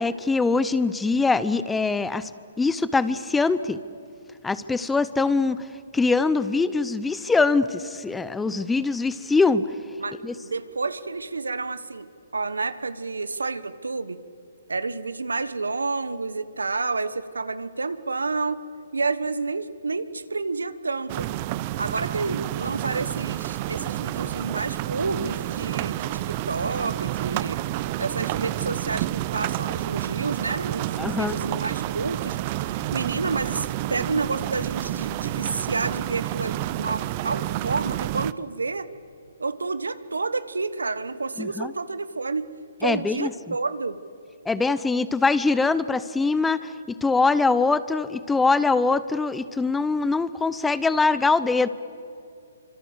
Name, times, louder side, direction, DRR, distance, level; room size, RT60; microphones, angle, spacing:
voice 1, 0.0-2.3 2.6-3.8 4.4-5.6 5.9-9.6 10.2-10.3 31.0-31.3 41.4-41.7 42.8-43.5 44.5-51.7, left 3 dB, 5° left, 15 dB, 0.8 m, -23 dB
voice 2, 10.0-12.1 12.3-14.2 14.7-18.6 18.9-21.3 21.8-27.6 28.0-32.4 32.6-38.9 39.4-42.5 42.8-44.0, right 3 dB, 85° right, 14 dB, 1.2 m, -29 dB
sound 1, 21.1-38.3, right 15 dB, 35° right, 0.7 m, -29 dB
26.5 x 25.5 x 8.2 m, 2.6 s
hypercardioid pair, 135°, 0 cm